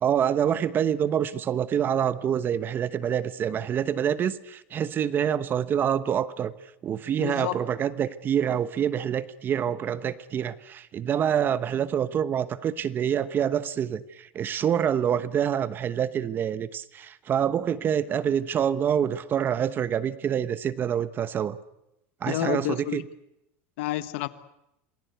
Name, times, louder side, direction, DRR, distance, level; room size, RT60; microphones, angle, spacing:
voice 1, 0.0-6.5 6.8-21.6 22.2-23.0, right 9 dB, 30° right, 1.0 m, -26 dB
voice 2, 7.2-7.6 22.3-23.0 23.8-24.3, left 16 dB, 75° left, 1.4 m, -29 dB
27.5 x 20.0 x 8.2 m
supercardioid pair, 130°, 7 cm